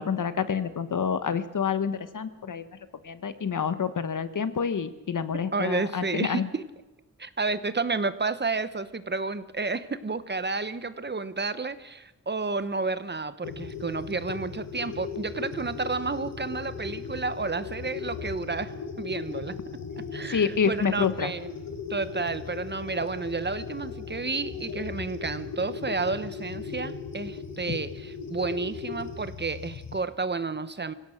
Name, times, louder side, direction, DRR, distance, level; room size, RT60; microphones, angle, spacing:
voice 1, 0.0-2.7 3.0-6.5 20.3-21.3, left 6 dB, 70° left, 12 dB, 1.3 m, -28 dB
voice 2, 5.5-6.6 7.2-19.6 20.1-21.5 21.9-30.9, right 4 dB, 35° right, 13 dB, 1.0 m, -31 dB
sound 1, 13.4-30.0, left 6 dB, 85° left, 1.9 m, -38 dB
25.5 x 16.5 x 6.4 m, 1.0 s
wide cardioid pair, 120°, 32 cm